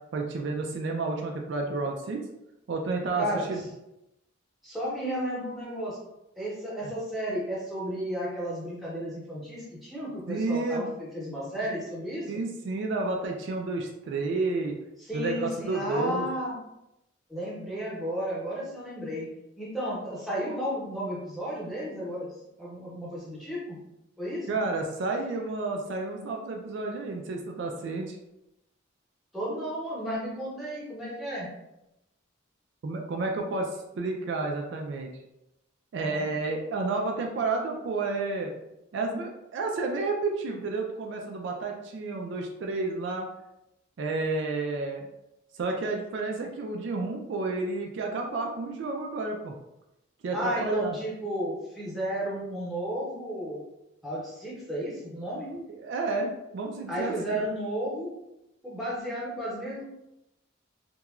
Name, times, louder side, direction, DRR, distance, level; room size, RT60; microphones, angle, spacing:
voice 1, 0.1-2.2 2.7-3.6 6.8-6.9 10.3-10.9 12.3-14.8 15.1-16.3 24.5-28.2 32.8-35.1 35.9-38.6 38.9-43.3 44.0-45.1 45.5-49.5 50.2-51.0 55.5-57.4, right 3 dB, 60° right, 1 dB, 0.3 m, -31 dB
voice 2, 4.6-6.0 6.4-12.2 15.0-16.5 17.3-19.3 19.6-22.3 22.6-23.8 24.2-24.6 29.3-31.5 36.0-36.3 50.3-53.6 54.0-55.5 56.9-58.1 58.6-59.8, equal, ahead, -7 dB, 0.8 m, -33 dB
2.9 x 2.2 x 2.3 m, 0.89 s
head